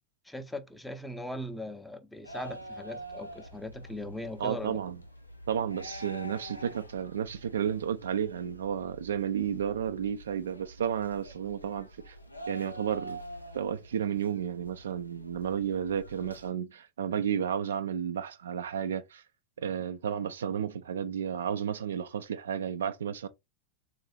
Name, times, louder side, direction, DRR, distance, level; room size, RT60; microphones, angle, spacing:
voice 1, 0.2-4.8, left 1 dB, 5° left, 0.5 m, -39 dB
sound 1, 2.2-16.5, right 1 dB, 85° left, 0.5 m, -46 dB
voice 2, 4.4-5.0 5.5-12.2 12.5-13.2 13.5-19.2 19.6-23.3, right 8 dB, 65° right, 0.3 m, -32 dB
3.8 x 2.5 x 3.1 m
figure-of-eight pair, 90°, 0 cm